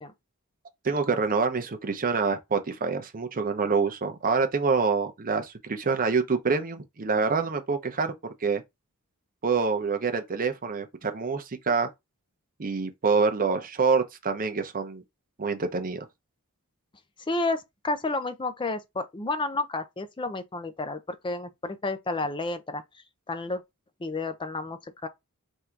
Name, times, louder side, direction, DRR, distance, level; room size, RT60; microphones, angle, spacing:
voice 1, 0.8-8.1 8.4-8.6 9.4-11.9 12.6-15.0 15.4-16.0, right 4 dB, 40° right, 0.7 m, -26 dB
voice 2, 17.3-22.8 23.3-23.6 24.0-25.1, left 2 dB, 20° left, 0.5 m, -31 dB
3.6 x 2.7 x 4.5 m
head